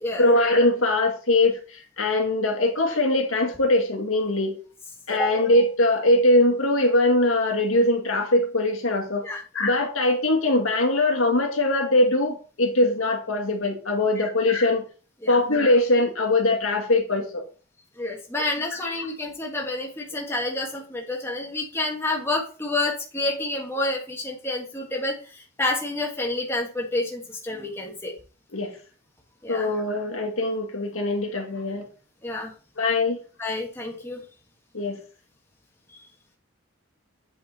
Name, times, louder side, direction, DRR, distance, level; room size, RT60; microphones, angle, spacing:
voice 1, 0.2-4.6 5.1-9.3 9.5-14.8 15.3-17.4 28.5-28.8 29.5-31.9 32.8-33.2 34.7-35.0, left 2 dB, 80° left, 3 dB, 1.9 m, -22 dB
voice 2, 18.0-28.1 29.4-29.7 32.2-32.5 33.4-34.2 35.9-36.0, left 2 dB, 10° left, -1 dB, 1.5 m, -29 dB
8.4 x 5.3 x 4.1 m, 0.38 s
head